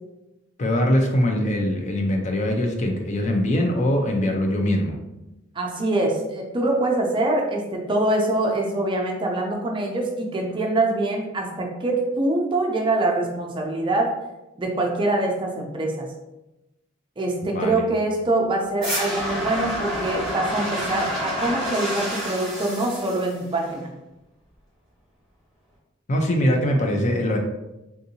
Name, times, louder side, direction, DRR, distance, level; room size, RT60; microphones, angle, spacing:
voice 1, 0.6-5.0 17.5-17.8 26.1-27.4, left 1 dB, 35° left, 3 dB, 0.4 m, -22 dB
voice 2, 5.6-14.1 14.6-16.1 17.2-23.9, right 2 dB, 25° right, 1 dB, 0.5 m, -24 dB
sound 1, 18.8-23.8, equal, ahead, 1.0 m, -29 dB
3.5 x 2.6 x 2.7 m, 0.96 s
head